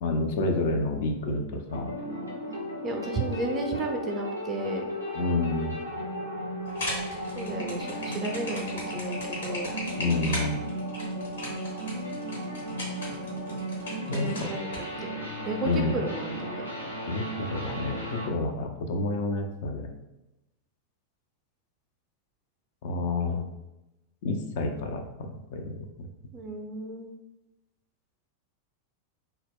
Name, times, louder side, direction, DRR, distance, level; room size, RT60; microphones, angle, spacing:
voice 1, 0.0-1.9 5.1-5.8 10.0-10.6 14.1-14.5 15.6-16.0 17.1-19.9 22.8-23.4 24.2-26.1, left 2 dB, 50° left, 4 dB, 0.3 m, -29 dB
sound 1, 1.7-18.3, equal, 90° left, 0.6 m, -35 dB
voice 2, 2.8-4.9 7.3-9.2 9.4-9.7 14.1-16.6 26.3-27.1, right 2 dB, 25° right, 2 dB, 0.4 m, -33 dB
sound 2, 6.7-14.8, left 1 dB, 65° left, 1.0 m, -37 dB
2.2 x 2.0 x 3.5 m, 0.96 s
figure-of-eight pair, 90°, 0 cm